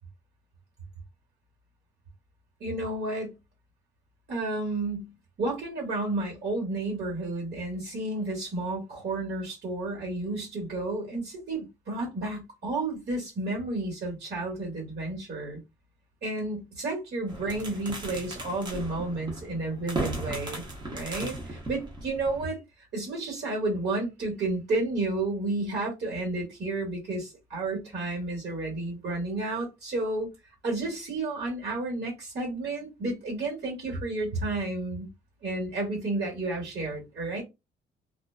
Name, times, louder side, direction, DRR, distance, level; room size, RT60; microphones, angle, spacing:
voice 1, 2.6-3.4 4.3-15.6 16.2-20.6 20.9-22.6 22.9-30.3 30.6-35.1 35.4-37.4, right 2 dB, 55° right, 1.3 m, -31 dB
sound 1, 17.3-22.5, right 1 dB, 20° right, 0.8 m, -37 dB
2.4 x 2.2 x 2.4 m
cardioid pair, 110°, 20 cm